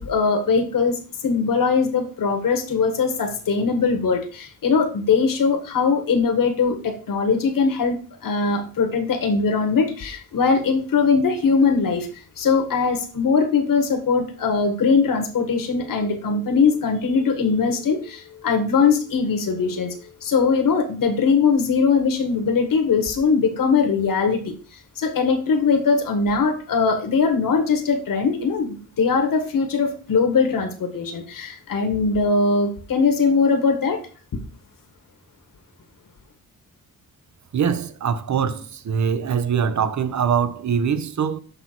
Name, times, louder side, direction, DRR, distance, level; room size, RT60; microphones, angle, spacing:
voice 1, 0.0-12.1 12.4-19.9 20.2-24.4 24.9-34.0, left 5 dB, 65° left, 1.6 m, -21 dB
voice 2, 37.5-41.4, right 7 dB, 50° right, 0.9 m, -23 dB
6.8 x 5.7 x 4.5 m
cardioid pair, 95°, 36 cm